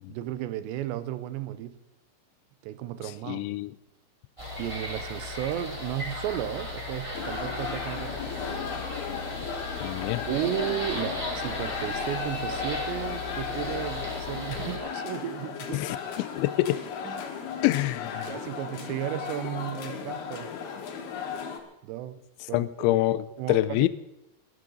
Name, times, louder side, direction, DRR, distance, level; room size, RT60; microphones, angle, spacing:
voice 1, 0.1-1.8 2.6-3.5 4.6-8.8 10.3-15.9 17.0-17.3 18.3-20.5 21.8-22.2 22.5-23.0 23.4-23.9, right 12 dB, 80° right, 2.8 m, -34 dB
voice 2, 3.3-3.7 9.8-10.2 15.7-16.8 17.6-18.3 22.5-23.9, left 16 dB, 85° left, 2.9 m, -26 dB
sound 1, 4.4-14.8, left 2 dB, 10° right, 1.6 m, -36 dB
sound 2, 7.1-21.6, left 6 dB, 65° left, 3.2 m, -35 dB
20.5 x 12.5 x 3.9 m
omnidirectional pair, 5.4 m